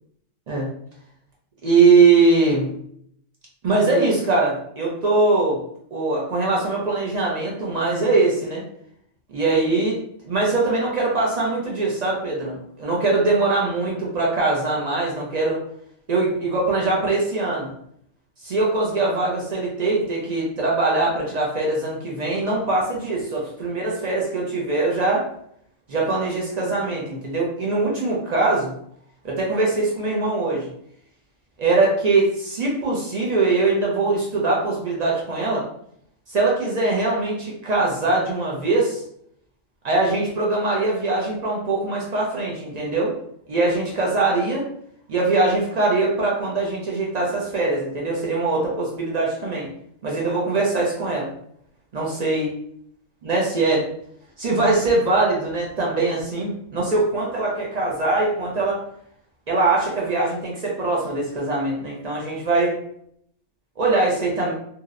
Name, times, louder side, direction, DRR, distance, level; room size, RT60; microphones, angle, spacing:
voice 1, 1.6-2.7 3.6-5.6 5.9-8.6 9.3-10.0 10.2-15.6 16.1-17.7 18.4-25.3 25.9-28.7 29.2-30.7 31.6-35.6 36.3-39.0 39.8-43.1 43.5-44.6 45.1-49.7 50.0-51.3 51.9-52.5 53.2-53.8 54.4-58.8 59.5-62.7 63.8-64.5, right 3 dB, 60° right, -3 dB, 0.4 m, -22 dB
2.7 x 2.0 x 2.4 m, 0.69 s
omnidirectional pair, 1.3 m